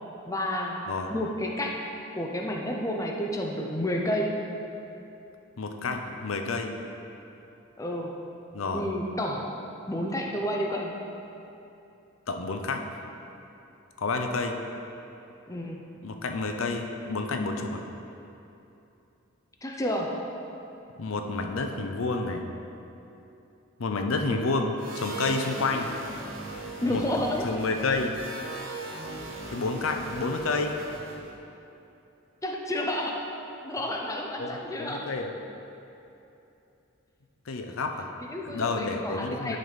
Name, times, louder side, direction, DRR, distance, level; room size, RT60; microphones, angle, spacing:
voice 1, 0.3-0.8 1.1-1.9 2.1-4.4 7.8-8.3 8.7-9.5 9.9-10.9 15.5-15.9 19.6-20.1 26.8-27.4 32.4-33.2 33.6-35.1 38.2-39.6, left 1 dB, 15° left, 0 dB, 0.6 m, -30 dB
voice 2, 5.6-6.7 8.5-8.9 12.3-12.9 14.0-14.6 16.0-17.8 21.0-22.5 23.8-25.9 26.9-27.0 27.4-28.2 29.5-30.8 34.4-35.3 37.5-38.1 38.4-39.6, left 3 dB, 75° left, 5 dB, 0.6 m, -29 dB
sound 1, 24.8-31.3, right 2 dB, 65° right, 1.2 m, -39 dB
11.0 x 4.1 x 5.1 m, 2.9 s
head